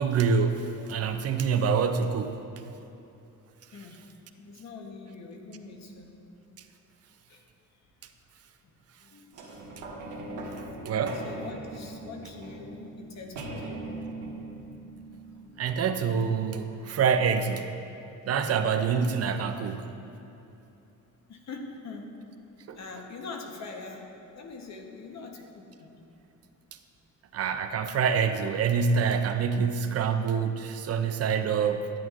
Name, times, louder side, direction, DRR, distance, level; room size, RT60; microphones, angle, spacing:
voice 1, 0.0-2.4 10.6-11.2 15.6-17.7 18.2-19.9 22.7-22.8 27.3-31.9, right 6 dB, 50° right, 8 dB, 0.4 m, -26 dB
voice 2, 3.7-4.0 4.4-6.1 7.3-7.5 9.0-9.6 10.4-13.8 21.3-22.1 22.7-24.1 24.3-26.0, left 4 dB, 60° left, 2 dB, 1.0 m, -43 dB
sound 1, 9.3-16.1 16.7-16.8, right 2 dB, 80° right, 1.5 m, -40 dB
11.0 x 9.0 x 2.4 m, 2.9 s
cardioid pair, 145°, 31 cm